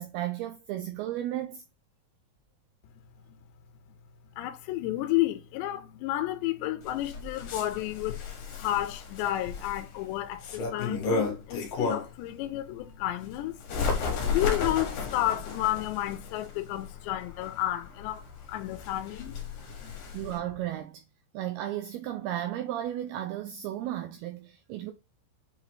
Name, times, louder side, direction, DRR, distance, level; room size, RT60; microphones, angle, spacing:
voice 1, 0.0-1.6 20.1-21.0 21.3-24.9, right 12 dB, 85° right, 2.3 m, -34 dB
voice 2, 4.4-8.2 8.6-13.8 14.3-19.4 19.8-20.0, left 14 dB, 85° left, 2.8 m, -31 dB
Bird, 6.8-12.3 12.7-20.4, left 4 dB, 60° left, 2.7 m, -34 dB
8.0 x 4.0 x 3.0 m
omnidirectional pair, 5.2 m